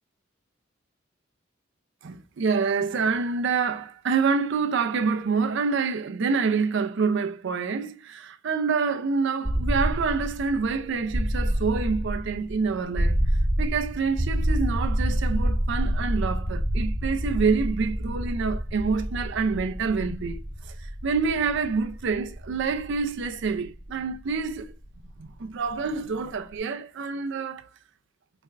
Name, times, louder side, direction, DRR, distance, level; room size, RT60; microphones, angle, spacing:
voice 1, 2.0-13.2 13.6-24.8 25.2-27.7, right 5 dB, 65° right, 0.4 m, -27 dB
sound 1, 9.4-25.3, equal, 20° right, 1.1 m, -28 dB
4.2 x 2.4 x 3.2 m
head